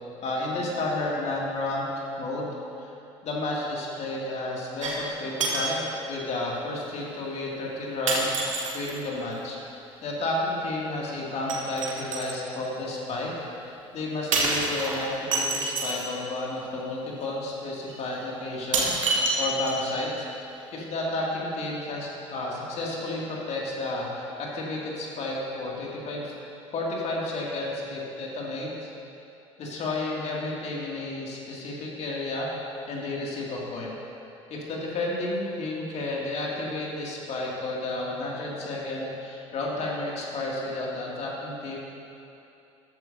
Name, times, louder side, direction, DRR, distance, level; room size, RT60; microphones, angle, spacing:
voice 1, 0.2-1.9 2.2-2.5 2.8-2.9 3.2-5.8 6.1-8.4 8.7-13.3 13.6-19.0 19.4-20.3 20.7-26.3 26.7-28.9 29.6-32.5 32.9-33.9 34.5-41.8, left 2 dB, 40° left, -3 dB, 2.4 m, -31 dB
sound 1, 4.8-5.1 5.4-5.8 6.8-6.9 8.1-9.0 11.5-12.4 14.3-16.1 17.2-17.3 17.9-18.0 18.7-20.0 20.3-20.4, right 3 dB, 75° right, 1.4 m, -27 dB
13.5 x 11.5 x 2.8 m, 2.8 s
figure-of-eight pair, 65°, 17 cm